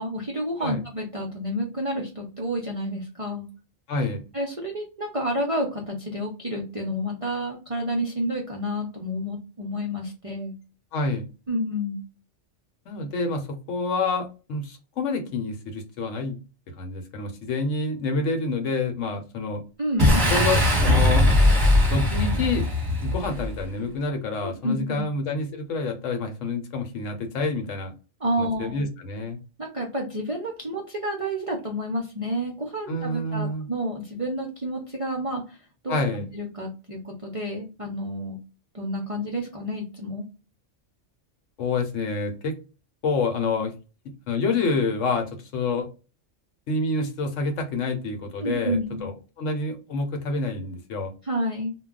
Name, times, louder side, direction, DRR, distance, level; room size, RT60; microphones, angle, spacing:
voice 1, 0.0-3.5 4.3-10.5 11.5-12.0 19.8-20.3 24.4-25.1 28.2-28.8 29.6-35.6 35.8-38.4 38.7-40.2 48.4-49.1 51.2-51.8, equal, 40° right, -1 dB, 0.5 m, -30 dB
voice 2, 3.9-4.2 10.9-11.2 12.9-16.4 16.8-19.6 20.3-21.3 21.9-22.7 23.0-27.9 28.4-29.4 32.9-33.7 35.9-36.3 41.6-42.5 43.0-43.7 44.3-45.3 45.5-45.9 46.7-51.1, left 3 dB, 75° left, 5 dB, 1.0 m, -27 dB
Boom, 20.0-23.6, left 1 dB, 20° right, 0.8 m, -20 dB
2.3 x 2.2 x 3.6 m, 0.32 s
omnidirectional pair, 1.3 m